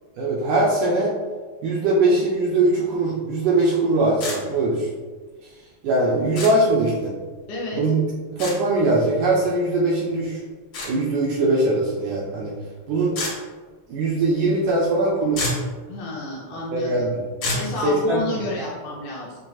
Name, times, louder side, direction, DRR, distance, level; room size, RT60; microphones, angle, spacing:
voice 1, 0.2-1.2 1.6-4.9 5.8-7.2 7.7-8.0 8.3-10.4 10.8-12.6 12.9-13.2 13.9-15.5 16.7-17.2 17.8-18.4, right 2 dB, 75° right, -5 dB, 1.9 m, -21 dB
sound 1, 4.2-4.4 6.3-6.5 8.4-8.6 10.7-10.9 13.1-13.3 15.0-15.1 15.3-15.7 17.4-17.7, left 2 dB, 50° left, 1.7 m, -27 dB
voice 2, 7.5-7.8 15.9-17.0 17.5-19.3, left 2 dB, 75° left, -4 dB, 2.0 m, -30 dB
7.6 x 2.9 x 2.4 m, 1.4 s
omnidirectional pair, 4.2 m